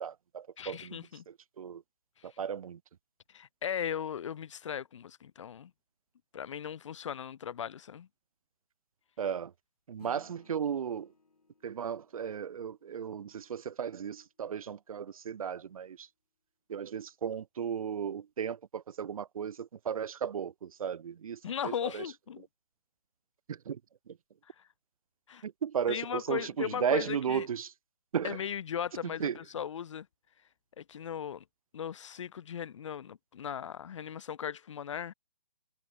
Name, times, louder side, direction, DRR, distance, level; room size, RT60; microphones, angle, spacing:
voice 1, 0.0-1.8 2.2-2.8 9.2-9.5 9.9-11.1 11.6-16.1 16.7-22.0 23.5-23.8 24.1-24.2 25.4-27.7 28.1-28.4 29.2-29.4, right 8 dB, 65° right, 0.5 m, -35 dB
voice 2, 0.6-1.2 3.3-5.7 6.3-8.1 21.4-22.5 24.6-24.7 25.3-25.4 25.9-27.5 28.2-30.1 30.8-31.4 31.7-35.1, left 8 dB, 50° left, 0.5 m, -37 dB
Acoustic guitar / Strum, 10.0-14.8, left 3 dB, 80° left, 5.8 m, -62 dB
figure-of-eight pair, 145°, 19 cm